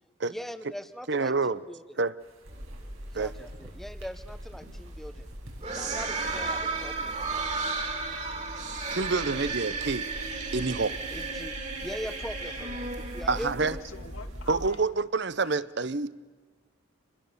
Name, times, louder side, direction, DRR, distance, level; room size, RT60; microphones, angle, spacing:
voice 1, 0.2-1.8 3.1-5.3 5.7-7.4 11.1-11.5 11.8-13.8, equal, ahead, 12 dB, 0.9 m, -41 dB
voice 2, 1.1-1.6 2.0-2.1 3.1-3.3 8.9-10.1 10.5-11.0 13.3-13.8 14.5-16.1, right 4 dB, 55° right, 18 dB, 0.8 m, -27 dB
sound 1, 2.2-14.9, right 1 dB, 90° right, 5.7 m, -55 dB
sound 2, 2.5-14.7, right 3 dB, 35° right, 2.7 m, -35 dB
voice 3, 13.3-14.8 15.4-15.6, left 4 dB, 80° left, 6 dB, 2.0 m, -46 dB
27.0 x 21.0 x 7.0 m, 1.4 s
head